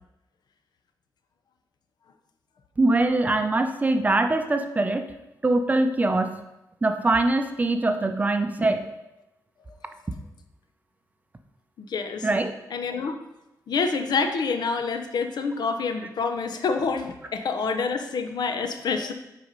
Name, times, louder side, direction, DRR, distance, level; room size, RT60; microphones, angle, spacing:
voice 1, 2.8-5.1 5.4-6.4 6.8-8.9 12.2-12.6, right 2 dB, 20° right, 7 dB, 0.5 m, -23 dB
voice 2, 11.8-12.3 12.7-13.2 13.7-19.1, left 4 dB, 70° left, 7 dB, 0.7 m, -27 dB
7.8 x 4.2 x 5.2 m, 0.92 s
wide cardioid pair, 140°, 7 cm